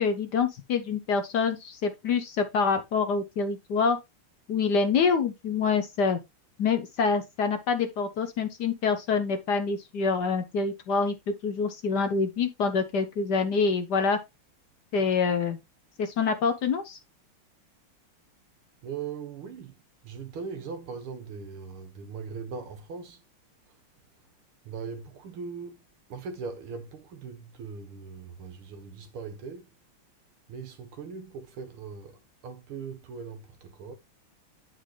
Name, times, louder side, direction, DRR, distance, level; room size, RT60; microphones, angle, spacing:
voice 1, 0.0-4.0 4.5-6.2 6.6-14.2 14.9-15.6 16.0-17.0, left 5 dB, 60° left, 1.3 m, -26 dB
voice 2, 18.8-19.8 20.0-23.2 24.7-25.8 26.1-29.7 30.5-32.2 32.4-33.9, right 5 dB, 75° right, 2.2 m, -39 dB
9.5 x 5.0 x 3.2 m
omnidirectional pair, 2.4 m